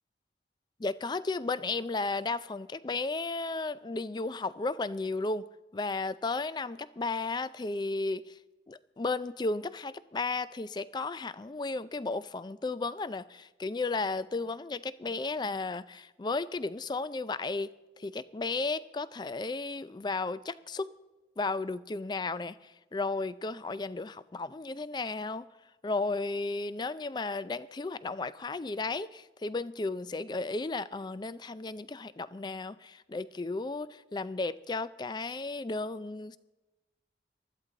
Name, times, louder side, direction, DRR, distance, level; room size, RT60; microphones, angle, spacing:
voice 1, 0.8-5.5 5.7-8.4 8.7-20.9 21.4-25.5 25.8-36.4, left 3 dB, 25° left, 16 dB, 0.4 m, -34 dB
20.0 x 13.0 x 3.9 m, 1.1 s
head